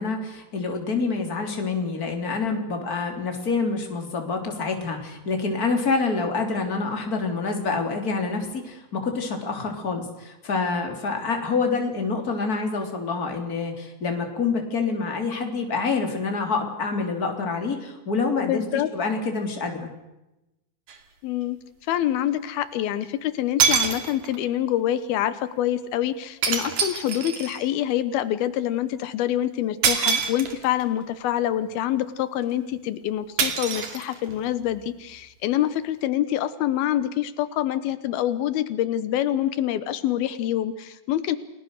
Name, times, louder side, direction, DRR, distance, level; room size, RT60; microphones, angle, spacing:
voice 1, 0.0-19.9, left 4 dB, 25° left, 3 dB, 3.6 m, -27 dB
voice 2, 18.5-18.9 21.2-21.6 21.9-41.4, left 12 dB, 85° left, 13 dB, 3.0 m, -26 dB
sound 1, 20.9-21.0 23.0-23.1 23.6-24.5 26.4-27.7 29.8-30.8 33.4-34.5, right 6 dB, 60° right, 3.7 m, -25 dB
30.0 x 20.5 x 6.6 m, 0.95 s
omnidirectional pair, 4.3 m